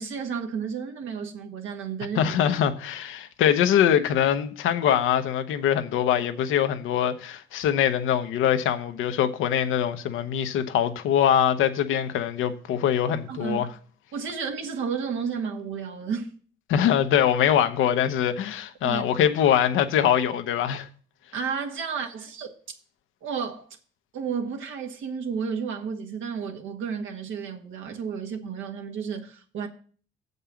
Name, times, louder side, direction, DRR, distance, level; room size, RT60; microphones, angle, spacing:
voice 1, 0.0-2.4 13.3-13.7 14.1-16.3 18.8-19.0 21.3-22.5 23.2-23.8 24.1-29.7, right 6 dB, 80° right, 1.6 m, -32 dB
voice 2, 2.2-13.7 16.7-20.9, left 9 dB, 90° left, 0.8 m, -23 dB
7.5 x 5.4 x 7.0 m
cardioid pair, 90°, 20 cm